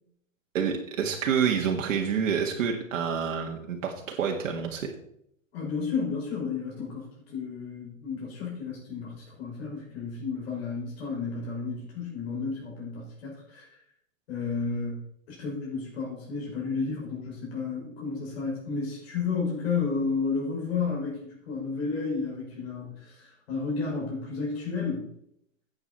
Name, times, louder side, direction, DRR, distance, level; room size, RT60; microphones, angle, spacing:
voice 1, 0.5-4.9, right 7 dB, 70° right, 1 dB, 1.8 m, -28 dB
voice 2, 5.5-13.6 14.3-15.0 15.3-25.1, left 4 dB, 50° left, -4 dB, 5.5 m, -32 dB
14.0 x 8.7 x 4.3 m, 0.72 s
hypercardioid pair, 170°, 40 cm